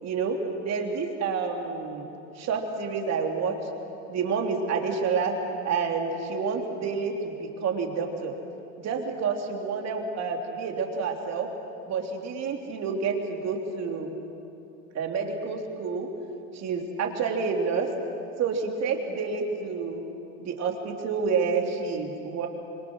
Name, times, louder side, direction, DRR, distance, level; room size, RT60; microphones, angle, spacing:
voice 1, 0.0-2.1 2.4-3.5 4.1-5.3 5.6-8.3 8.8-11.5 11.9-14.1 14.9-16.1 16.5-17.9 18.4-20.0 20.4-22.5, right 5 dB, 40° right, 2 dB, 3.3 m, -29 dB
27.0 x 22.5 x 6.4 m, 2.8 s
supercardioid pair, 115°, 40 cm